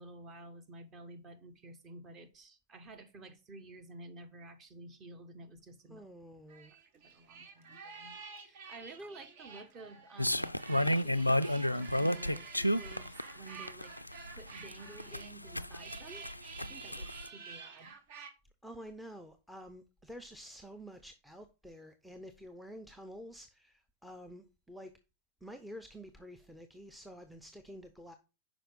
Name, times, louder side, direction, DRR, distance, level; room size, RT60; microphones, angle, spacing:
voice 1, 0.0-6.0 6.7-13.9 14.3-16.3 16.6-17.9, right 2 dB, 30° right, 1.3 m, -51 dB
voice 2, 5.9-6.7 7.0-7.2 18.6-25.0 25.4-28.2, equal, 5° right, 0.6 m, -49 dB
sound 1, 6.5-18.3, right 5 dB, 50° right, 1.2 m, -50 dB
sound 2, 10.2-17.3, left 1 dB, 85° left, 0.3 m, -31 dB
5.8 x 5.0 x 5.3 m
figure-of-eight pair, 90°, 0 cm